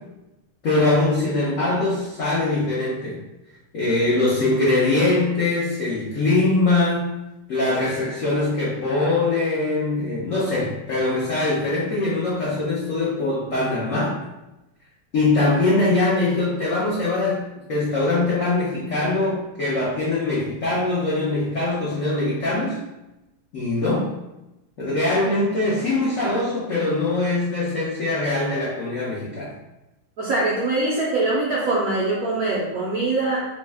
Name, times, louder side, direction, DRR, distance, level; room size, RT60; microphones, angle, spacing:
voice 1, 0.6-3.2 3.7-7.1 7.5-14.2 15.1-17.4 17.7-22.8 23.5-24.1 24.8-29.5, left 2 dB, 90° left, -7 dB, 0.7 m, -22 dB
voice 2, 30.2-33.5, right 2 dB, 80° right, -6 dB, 0.8 m, -23 dB
3.4 x 2.1 x 3.3 m, 0.97 s
omnidirectional pair, 2.3 m